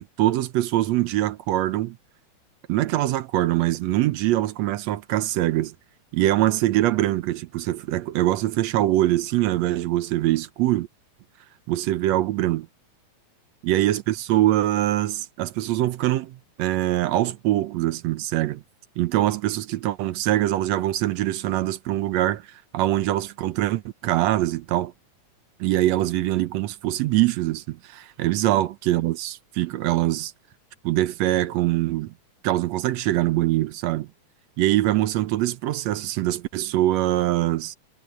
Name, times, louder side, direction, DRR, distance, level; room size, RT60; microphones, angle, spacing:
voice 1, 0.0-2.0 2.7-5.7 6.1-10.9 11.7-12.7 13.6-18.6 19.0-24.9 25.6-30.3 30.8-32.1 32.4-34.1 34.6-37.7, right 15 dB, 75° right, 1.9 m, -23 dB
omnidirectional pair, 3.3 m